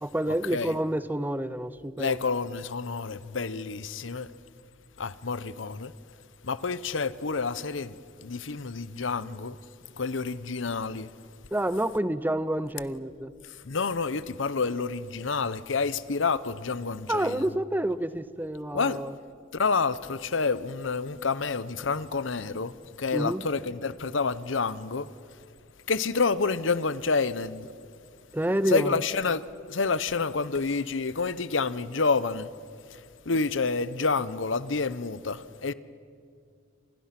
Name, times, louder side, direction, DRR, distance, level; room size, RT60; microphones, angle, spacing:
voice 1, 0.0-2.2 11.5-13.3 17.1-19.1 23.1-23.4 28.3-29.0, right 1 dB, 10° right, 0.7 m, -28 dB
voice 2, 2.0-4.3 5.0-5.9 6.4-9.6 10.0-11.1 13.6-17.5 18.7-19.0 19.5-22.7 23.0-25.1 25.9-27.7 28.7-32.5 32.9-33.0 33.3-35.7, left 4 dB, 75° left, 0.9 m, -28 dB
29.0 x 26.5 x 6.0 m
head